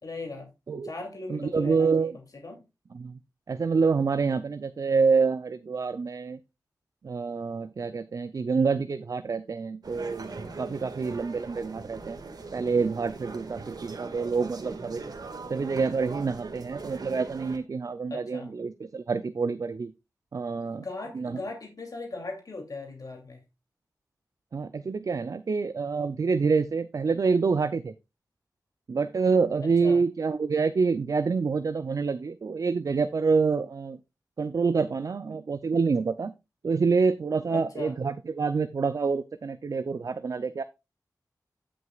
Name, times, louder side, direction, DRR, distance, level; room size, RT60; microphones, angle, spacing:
voice 1, 0.0-0.5 0.8-2.1 2.4-2.6 18.1-18.5 20.6-23.4 29.8-30.0 37.5-38.0, left 2 dB, 60° left, 2 dB, 2.7 m, -38 dB
voice 2, 1.3-2.2 2.9-3.2 3.5-6.4 7.0-10.3 10.6-12.2 12.5-15.0 15.5-19.9 20.3-20.9 21.1-21.4 24.5-27.9 28.9-34.0 34.4-36.3 36.6-40.6, right 4 dB, 55° right, 13 dB, 0.5 m, -27 dB
sound 1, 9.8-17.6, right 4 dB, 70° right, 1.8 m, -41 dB
15.5 x 6.3 x 2.4 m, 0.24 s
wide cardioid pair, 95°, 7 cm